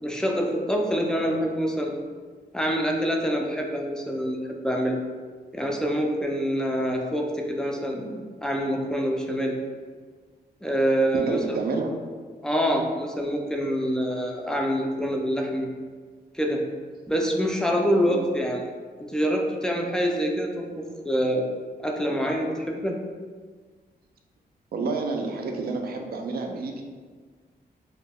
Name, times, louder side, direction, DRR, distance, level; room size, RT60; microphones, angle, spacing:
voice 1, 0.0-1.9 2.5-4.4 4.6-5.0 5.5-9.6 10.6-11.6 12.4-15.7 16.3-16.6 17.1-18.6 19.0-21.5 21.8-23.0, equal, 5° left, 1 dB, 0.3 m, -26 dB
voice 2, 11.1-12.0 18.0-18.2 24.7-26.8, right 3 dB, 65° right, 3 dB, 0.4 m, -29 dB
2.3 x 2.1 x 3.4 m, 1.5 s
wide cardioid pair, 115°, 17 cm